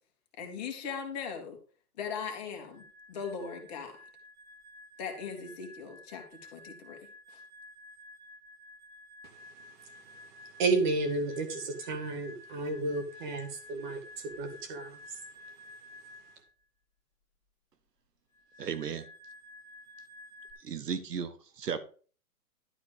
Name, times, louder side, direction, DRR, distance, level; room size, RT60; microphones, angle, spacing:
voice 1, 0.4-1.6 2.0-3.9 5.0-7.0 7.3-7.4, left 6 dB, 25° left, 3 dB, 2.0 m, -39 dB
sound 1, 2.7-16.4 18.3-20.5, left 1 dB, 5° right, 2.8 m, -52 dB
voice 2, 10.6-15.0, right 3 dB, 30° right, 6 dB, 2.1 m, -32 dB
voice 3, 18.6-19.0 20.6-21.8, right 7 dB, 85° right, 11 dB, 1.5 m, -35 dB
12.0 x 4.2 x 6.9 m, 0.40 s
hypercardioid pair, 160°, 46 cm